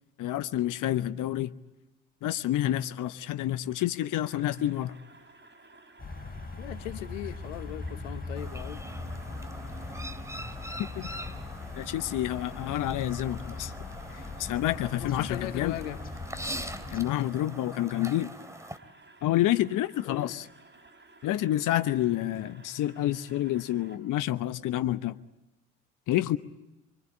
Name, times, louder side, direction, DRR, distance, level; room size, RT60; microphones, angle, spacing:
voice 1, 0.2-1.5 2.2-4.9 11.0-11.1 11.8-13.7 14.4-15.7 16.9-18.3 19.2-20.4 21.2-25.1 26.1-26.4, left 13 dB, 55° left, 1.0 m, -28 dB
sound 1, 4.2-24.0, right 3 dB, 30° right, 5.5 m, -55 dB
sound 2, 6.0-17.0, left 3 dB, 25° left, 6.9 m, -40 dB
voice 2, 6.6-8.8 14.9-16.0 20.0-20.4, left 14 dB, 80° left, 1.2 m, -38 dB
Chirp tweet, 8.4-18.8, right 1 dB, 10° right, 2.9 m, -43 dB
25.5 x 24.5 x 8.6 m
hypercardioid pair, 55°, 36 cm